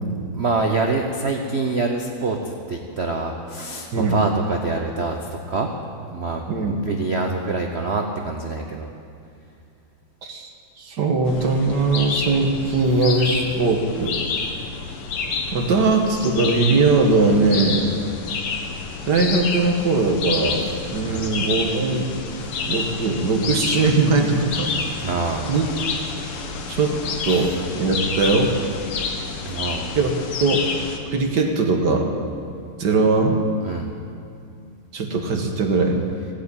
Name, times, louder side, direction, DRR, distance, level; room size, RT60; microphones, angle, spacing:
voice 1, 0.3-5.7 6.1-8.9 21.1-21.3 25.0-25.5 27.3-27.5 29.4-30.0 33.6-33.9, right 3 dB, 70° right, 3 dB, 0.6 m, -25 dB
voice 2, 6.5-6.8 10.2-10.5 10.8-14.2 15.5-17.9 19.1-20.7 20.9-22.1 22.6-24.7 25.5-25.7 26.7-26.9 27.2-28.5 30.0-30.1 30.4-30.7 31.1-32.1 32.8-33.4 34.9-36.0, right 3 dB, 55° right, 2 dB, 1.8 m, -20 dB
sound 1, 11.3-31.0, left 5 dB, 90° left, 2.1 m, -29 dB
16.0 x 8.3 x 8.7 m, 2.4 s
omnidirectional pair, 2.4 m